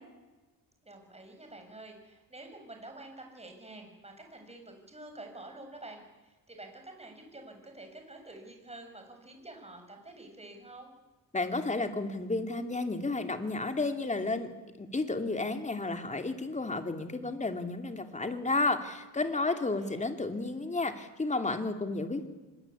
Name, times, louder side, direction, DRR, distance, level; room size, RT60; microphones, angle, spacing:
voice 1, 0.8-10.9 19.5-20.1, right 2 dB, 20° right, 4 dB, 7.2 m, -48 dB
voice 2, 11.3-14.5 14.8-22.3, left 3 dB, 20° left, 7 dB, 2.9 m, -32 dB
25.0 x 22.0 x 8.6 m, 1.1 s
cardioid pair, 105°, 35 cm